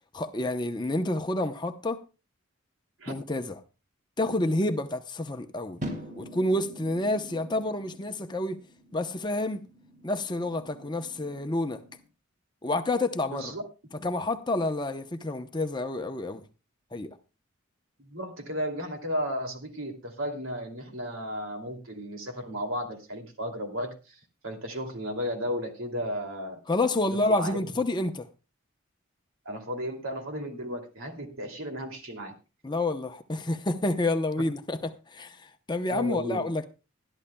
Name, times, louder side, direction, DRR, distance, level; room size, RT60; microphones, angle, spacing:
voice 1, 0.1-2.0 3.1-3.6 4.2-5.8 6.2-8.6 8.9-9.6 10.0-11.8 12.6-13.5 14.0-16.4 16.9-17.1 26.7-28.3 32.6-34.8 35.1-36.6, left 2 dB, 20° left, 0.7 m, -29 dB
sound 1, 5.8-12.0, equal, 35° right, 2.1 m, -44 dB
voice 2, 13.3-13.6 14.0-14.1 18.0-24.1 24.4-26.6 27.0-27.6 29.4-32.3 35.9-36.5, equal, 80° right, 2.6 m, -34 dB
20.0 x 12.0 x 2.2 m
head